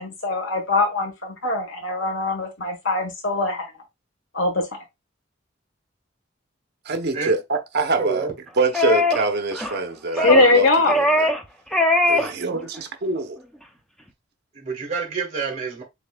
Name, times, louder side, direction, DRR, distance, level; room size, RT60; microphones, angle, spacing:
voice 1, 0.0-3.7 4.3-4.6 10.2-10.9, left 2 dB, 80° left, 1.3 m, -21 dB
voice 2, 6.8-8.3 8.6-11.3 12.0-13.4, right 3 dB, 55° right, 0.8 m, -25 dB
voice 3, 8.0-8.3 14.5-15.8, right 5 dB, 35° right, 1.6 m, -28 dB
sound 1, 8.7-9.3 9.5-9.8 10.2-10.5 10.9-11.5 11.7-12.3 12.6-12.8, left 1 dB, 5° left, 0.6 m, -20 dB
6.9 x 2.8 x 2.3 m
head